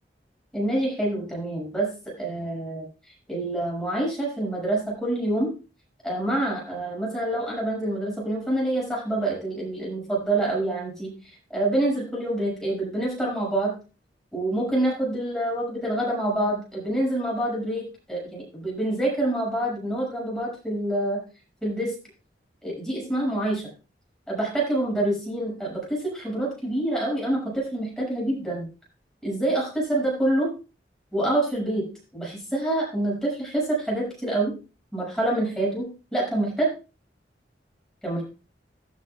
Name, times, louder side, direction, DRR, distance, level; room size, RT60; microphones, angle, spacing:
voice 1, 0.5-2.8 3.3-5.5 6.0-13.7 14.3-21.2 21.6-21.9 22.6-23.7 24.3-28.7 29.2-30.5 31.1-34.5 34.9-36.7 38.0-38.2, right 1 dB, 5° left, -3 dB, 6.5 m, -26 dB
16.5 x 9.4 x 2.4 m, 0.32 s
head